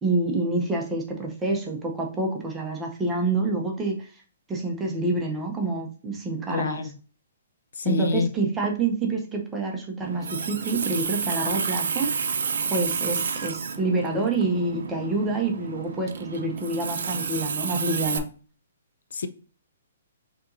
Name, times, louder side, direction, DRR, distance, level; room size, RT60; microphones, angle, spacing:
voice 1, 0.0-4.1 4.5-6.8 7.8-12.4 12.7-18.3, right 3 dB, 10° right, 0.6 m, -27 dB
voice 2, 6.5-7.0 7.7-8.3 19.1-19.3, left 4 dB, 75° left, 0.5 m, -27 dB
Water tap faucet, 10.0-18.2, right 5 dB, 70° right, 0.6 m, -30 dB
6.2 x 2.9 x 2.6 m
hypercardioid pair, 175°, 0 cm